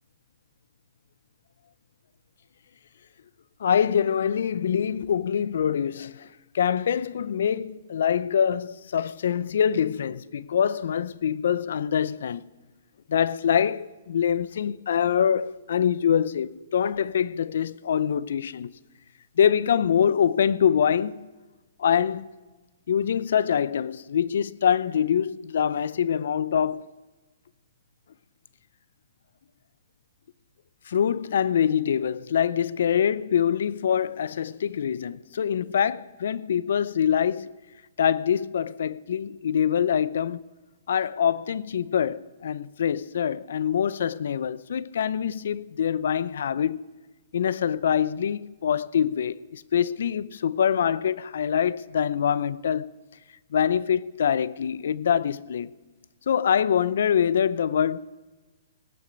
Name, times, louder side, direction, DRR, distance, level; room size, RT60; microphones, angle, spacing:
voice 1, 3.6-6.3 6.5-12.5 13.1-18.7 19.4-21.2 21.8-22.3 22.9-26.8 30.9-37.5 38.0-40.4 40.9-46.8 47.3-52.9 53.5-55.7 56.3-58.0, left 8 dB, 70° left, 0.5 m, -24 dB
17.5 x 10.5 x 5.2 m
hypercardioid pair, 145°, 0 cm